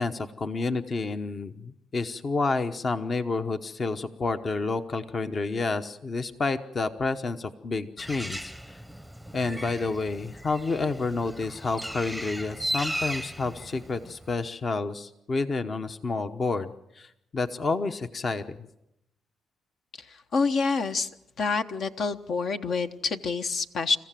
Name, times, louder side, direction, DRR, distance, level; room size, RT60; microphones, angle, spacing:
voice 1, 0.0-8.8 9.3-16.7 16.9-18.7, left 3 dB, 40° left, 8 dB, 1.0 m, -29 dB
Bird, 8.0-14.5, right 1 dB, 5° left, 0.9 m, -36 dB
voice 2, 20.0-21.1 21.4-24.0, left 4 dB, 60° left, 7 dB, 1.2 m, -27 dB
29.0 x 15.0 x 7.6 m, 0.86 s
cardioid pair, 90°, 0 cm